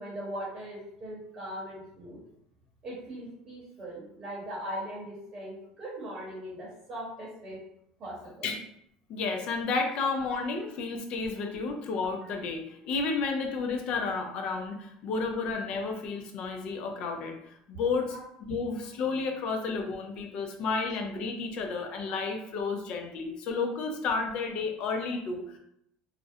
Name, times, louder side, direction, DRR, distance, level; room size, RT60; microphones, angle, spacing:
voice 1, 0.0-2.2 2.8-7.6 8.0-8.5 9.9-10.0 18.1-18.2, right 1 dB, 30° right, -6 dB, 0.9 m, -40 dB
voice 2, 9.1-18.2 18.5-25.6, left 4 dB, 50° left, 4 dB, 0.4 m, -32 dB
2.4 x 2.0 x 2.6 m, 0.74 s
cardioid pair, 135°, 2 cm